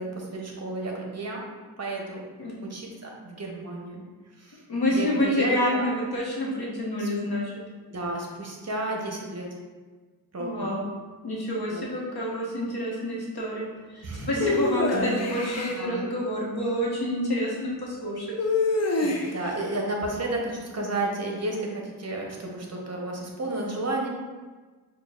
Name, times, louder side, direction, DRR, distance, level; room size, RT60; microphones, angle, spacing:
voice 1, 0.0-1.4 1.8-2.2 2.6-4.0 4.4-4.6 4.9-5.9 7.0-7.1 7.9-9.5 10.3-10.7 11.7-11.8 14.0-14.6 14.9-16.1 19.0-24.1, right 2 dB, 40° right, -1 dB, 0.8 m, -32 dB
voice 2, 4.7-7.5 10.4-10.8 11.2-13.7 13.9-18.3, left 1 dB, 70° left, -3 dB, 1.0 m, -28 dB
sound 1, 14.4-15.8 18.4-19.5, left 3 dB, 40° left, 0.5 m, -25 dB
6.0 x 2.3 x 2.3 m, 1.3 s
cardioid pair, 70°, 40 cm